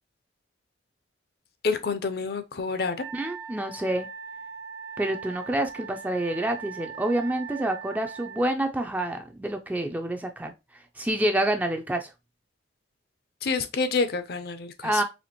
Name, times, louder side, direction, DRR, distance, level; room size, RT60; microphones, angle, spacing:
voice 1, 1.6-3.0 13.4-15.0, left 4 dB, 55° left, 0.5 m, -28 dB
Wind instrument woodwind instrument, 3.0-8.5, right 6 dB, 60° right, 0.8 m, -40 dB
voice 2, 3.1-4.1 5.0-10.5 11.0-12.1 14.8-15.0, right 1 dB, 10° right, 0.3 m, -27 dB
4.2 x 2.9 x 2.8 m
head